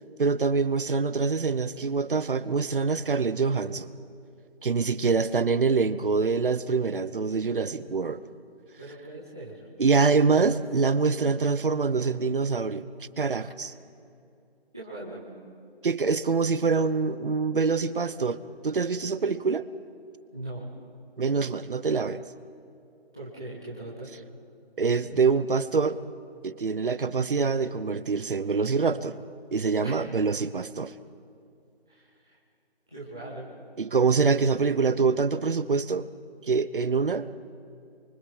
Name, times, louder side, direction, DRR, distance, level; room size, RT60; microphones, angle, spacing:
voice 1, 0.2-3.9 4.6-8.2 9.8-12.9 13.2-13.7 15.8-19.7 21.2-22.2 24.8-26.0 26.4-29.2 29.5-30.9 33.8-36.1 36.5-37.3, right 4 dB, 55° right, 15 dB, 1.0 m, -25 dB
voice 2, 8.8-9.7 14.7-15.2 20.3-20.7 23.1-24.1 29.8-30.0 31.9-32.4 32.9-33.5, right 1 dB, 5° right, -8 dB, 0.5 m, -40 dB
27.5 x 24.5 x 5.9 m, 2.5 s
figure-of-eight pair, 155°, 31 cm